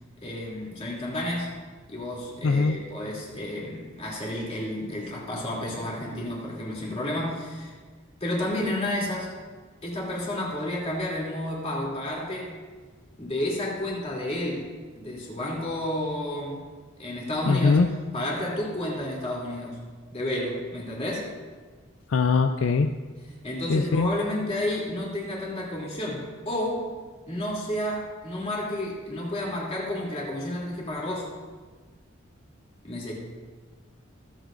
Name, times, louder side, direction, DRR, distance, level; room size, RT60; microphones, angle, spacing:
voice 1, 0.2-1.5 1.9-7.7 8.2-9.3 9.8-12.5 13.2-16.6 17.0-17.8 18.1-19.8 20.1-21.3 23.4-26.8 27.3-31.3 32.8-33.1, left 1 dB, 30° left, -4 dB, 2.9 m, -31 dB
voice 2, 2.4-2.8 17.4-17.9 22.1-22.9 23.7-24.1, left 4 dB, 70° left, 7 dB, 0.4 m, -21 dB
23.5 x 8.1 x 2.6 m, 1.4 s
head